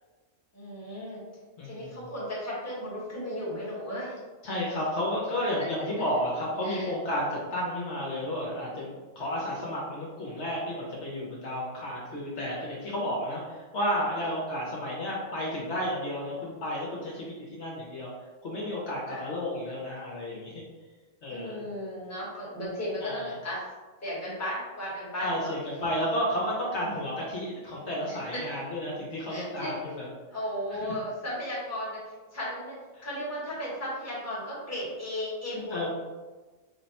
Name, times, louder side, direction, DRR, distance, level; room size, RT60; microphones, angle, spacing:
voice 1, 0.5-1.2 1.6-4.2 6.6-6.9 14.2-14.4 19.1-19.2 21.3-23.6 24.0-25.5 28.1-28.4 29.3-29.7 30.3-35.9, equal, 15° left, -7 dB, 1.0 m, -35 dB
voice 2, 1.6-2.0 4.4-18.1 18.4-20.5 21.2-21.6 23.0-23.2 25.2-30.1 30.8-30.9 32.9-33.1 35.7-35.9, equal, 65° left, -4 dB, 1.1 m, -32 dB
3.5 x 2.2 x 4.0 m, 1.3 s
omnidirectional pair, 1.3 m